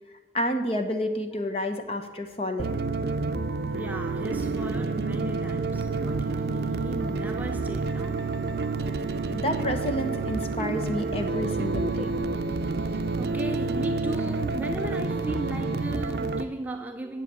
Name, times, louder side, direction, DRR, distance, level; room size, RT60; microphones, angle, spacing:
voice 1, 0.3-2.8 9.3-12.3, left 1 dB, 35° left, 1.0 m, -30 dB
sound 1, 2.2-16.4, right 1 dB, 5° left, 1.4 m, -47 dB
sound 2, 2.6-16.4, right 3 dB, 65° right, 0.5 m, -29 dB
voice 2, 3.7-8.3 12.8-17.2, right 1 dB, 10° right, 0.5 m, -37 dB
8.3 x 7.5 x 8.2 m
head